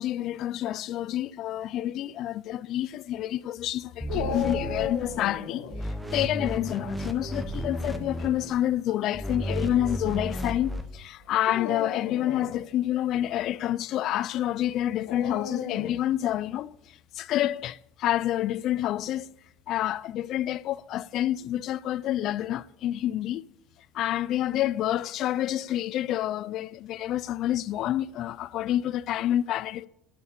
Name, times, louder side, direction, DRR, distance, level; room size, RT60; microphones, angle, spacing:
voice 1, 0.0-19.3 19.7-23.5 23.9-29.9, left 12 dB, 40° left, 0.3 m, -28 dB
sound 1, 4.0-5.4 5.7-8.6 9.1-10.9, right 1 dB, ahead, 0.7 m, -33 dB
Dog, 4.1-5.8 7.8-8.3 9.1-9.2 11.4-12.6 15.1-16.1, left 8 dB, 80° left, 1.5 m, -34 dB
12.5 x 5.5 x 6.6 m
cardioid pair, 165°, 0 cm